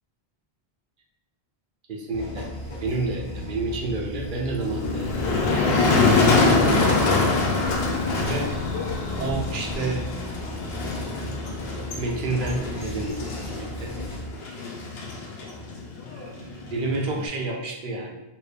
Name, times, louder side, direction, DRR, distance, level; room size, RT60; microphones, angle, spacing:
voice 1, 1.9-2.5 2.8-5.4 6.5-7.4 8.2-8.5 9.2-10.0 12.0-13.2 13.6-13.9 16.1-18.2, right 2 dB, 60° right, 0 dB, 0.7 m, -30 dB
sound 1, 2.1-14.3, equal, 35° left, 0.9 m, -35 dB
Motor vehicle (road), 4.6-17.3, left 3 dB, 80° left, 0.9 m, -25 dB
3.0 x 2.7 x 3.2 m, 0.97 s
omnidirectional pair, 1.1 m